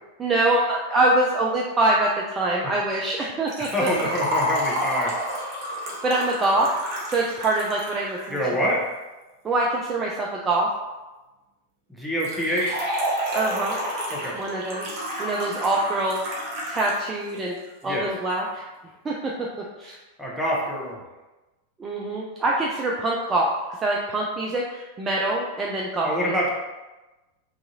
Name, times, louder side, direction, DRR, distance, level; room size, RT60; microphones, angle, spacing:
voice 1, 0.2-3.9 6.0-6.7 7.1-8.4 9.4-10.7 13.3-13.8 14.4-16.2 16.7-17.6 17.8-18.6 19.0-19.1 19.8-20.0 21.8-23.5 23.8-26.3, right 2 dB, 20° right, -3 dB, 0.3 m, -24 dB
Liquid, 3.5-8.5 12.2-17.0 17.3-17.4 18.3-18.4, equal, 40° right, 0.7 m, -30 dB
voice 2, 3.7-5.1 8.3-8.9 11.9-12.9 14.1-14.4 17.8-18.1 20.2-21.0 26.0-26.5, equal, ahead, -5 dB, 0.7 m, -26 dB
2.6 x 2.4 x 2.6 m, 1.1 s
figure-of-eight pair, 90°, 0 cm